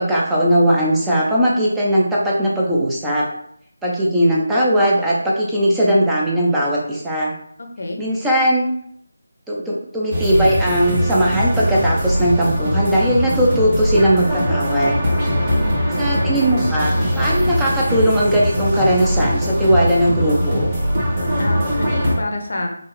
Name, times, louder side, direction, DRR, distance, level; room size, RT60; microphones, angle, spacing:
voice 1, 0.0-3.3 3.8-7.3 8.0-8.7 9.5-15.0 16.0-20.7, equal, 5° right, -6 dB, 0.6 m, -18 dB
voice 2, 7.6-8.0 15.5-15.8 21.4-22.7, left 1 dB, 55° left, 3 dB, 0.8 m, -28 dB
sound 1, 10.1-22.2, equal, 25° right, 1.5 m, -21 dB
5.3 x 2.5 x 3.3 m, 0.67 s
figure-of-eight pair, 160°, 0 cm